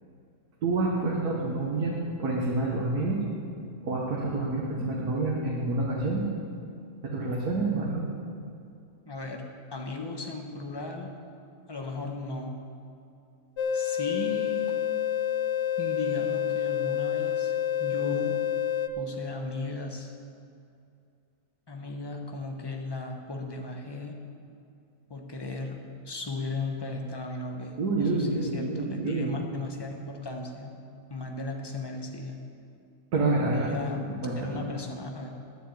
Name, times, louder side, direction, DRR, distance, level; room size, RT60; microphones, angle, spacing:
voice 1, 0.6-1.9 2.2-3.2 3.8-6.3 7.0-8.0 27.8-29.3 33.1-34.6, right 2 dB, 75° right, -3 dB, 1.8 m, -28 dB
voice 2, 9.1-9.5 9.7-11.1 11.7-12.5 13.7-14.6 15.8-17.5 17.8-18.4 19.0-20.1 21.7-24.2 25.1-25.8 26.0-30.8 31.1-32.4 33.5-34.1 34.4-35.4, left 3 dB, 20° left, 2 dB, 0.9 m, -36 dB
sound 1, 13.6-18.9, left 10 dB, 60° left, 0.7 m, -28 dB
10.5 x 7.2 x 8.4 m, 2.5 s
omnidirectional pair, 1.7 m